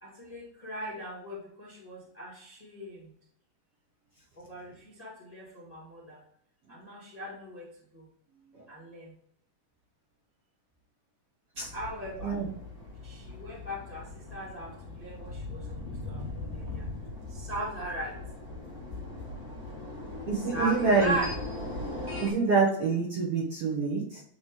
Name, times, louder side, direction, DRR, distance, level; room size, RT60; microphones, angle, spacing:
voice 1, 0.0-3.1 4.4-6.2 6.7-7.7 7.9-8.1 8.7-9.1 11.7-12.4 13.0-15.8 16.0-16.9 17.3-18.2 20.5-21.3, right 1 dB, 40° left, -6 dB, 0.5 m, -38 dB
sound 1, 11.5-22.3, left 2 dB, 40° right, 1.4 m, -40 dB
voice 2, 20.3-21.2 22.2-24.2, right 4 dB, 65° right, -5 dB, 1.4 m, -26 dB
8.6 x 3.2 x 3.6 m, 0.67 s
omnidirectional pair, 4.0 m